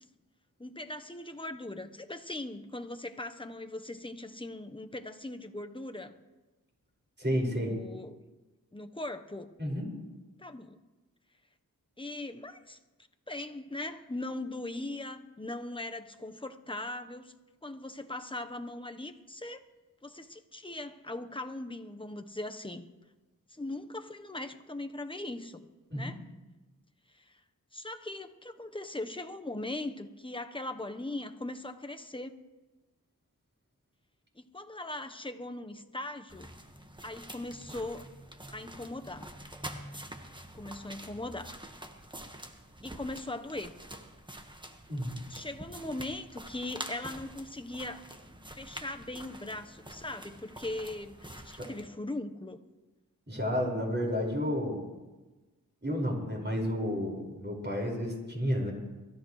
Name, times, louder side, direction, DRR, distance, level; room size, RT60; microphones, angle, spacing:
voice 1, 0.6-6.1 7.5-8.2 8.7-9.5 10.4-10.8 12.0-12.8 13.3-17.3 17.6-19.6 20.0-22.9 23.5-25.7 25.9-26.3 27.1-27.4 27.7-32.4 34.3-36.5 37.0-38.0 38.5-39.3 40.5-41.5 42.8-43.8 45.3-48.0 48.6-52.6, left 2 dB, 15° left, 7 dB, 1.1 m, -40 dB
voice 2, 7.2-7.7 9.6-9.9 25.9-26.1 44.9-45.3 51.6-51.7 53.3-54.8 55.8-58.7, equal, 30° right, -1 dB, 5.6 m, -31 dB
sound 1, 36.3-51.9, right 1 dB, 15° right, 1.5 m, -46 dB
24.0 x 13.5 x 3.2 m, 1.2 s
cardioid pair, 45°, 35 cm